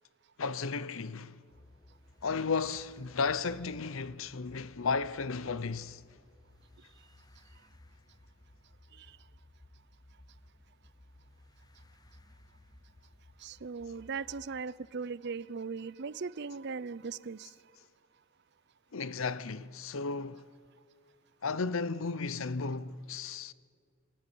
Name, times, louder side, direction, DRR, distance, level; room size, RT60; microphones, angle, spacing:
voice 1, 0.4-1.4 2.2-6.0 18.9-20.5 21.4-23.5, left 4 dB, 80° left, 0.8 m, -34 dB
sound 1, 1.5-14.6, left 1 dB, 20° left, 0.7 m, -59 dB
voice 2, 13.4-17.5, right 5 dB, 55° right, 0.6 m, -39 dB
28.5 x 22.5 x 9.2 m
head